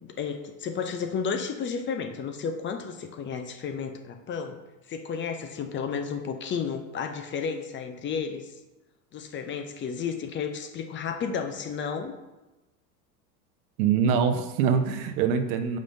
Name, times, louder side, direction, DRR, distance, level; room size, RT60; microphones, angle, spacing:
voice 1, 0.0-4.6 4.9-8.5 9.1-12.2, left 6 dB, 25° left, 6 dB, 0.6 m, -32 dB
voice 2, 13.8-15.8, right 7 dB, 65° right, 8 dB, 0.8 m, -24 dB
7.3 x 5.1 x 2.7 m, 1.0 s
hypercardioid pair, 95°, 48 cm